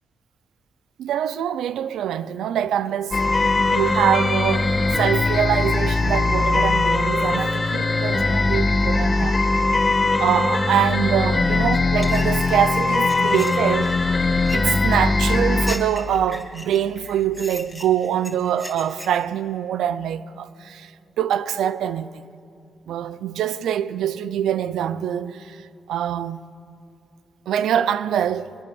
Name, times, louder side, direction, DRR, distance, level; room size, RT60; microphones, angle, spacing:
voice 1, 1.0-9.4 10.2-14.0 14.5-20.9 21.2-22.1 22.9-25.6 25.9-26.4 27.5-28.6, right 10 dB, 85° right, 0.6 m, -24 dB
sound 1, 3.1-15.8, left 3 dB, 35° left, 1.6 m, -20 dB
sound 2, 11.7-19.2, left 1 dB, ahead, 3.2 m, -38 dB
23.5 x 21.0 x 7.1 m
cardioid pair, 70°, 0 cm